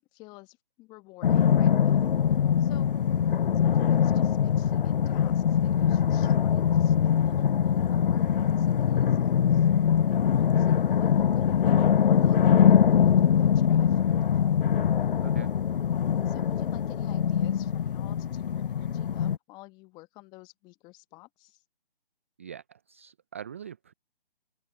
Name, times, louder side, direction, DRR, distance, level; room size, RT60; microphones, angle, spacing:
voice 1, 0.0-2.1 2.6-2.9 3.5-9.7 10.0-13.1 13.4-14.1 16.3-21.6, left 22 dB, 15° left, 1.1 m, -49 dB
sound 1, 1.2-19.4, left 8 dB, 65° left, 0.4 m, -23 dB
voice 2, 15.2-15.5 22.4-23.9, right 8 dB, 15° right, 0.4 m, -43 dB
open air
figure-of-eight pair, 145°, 30 cm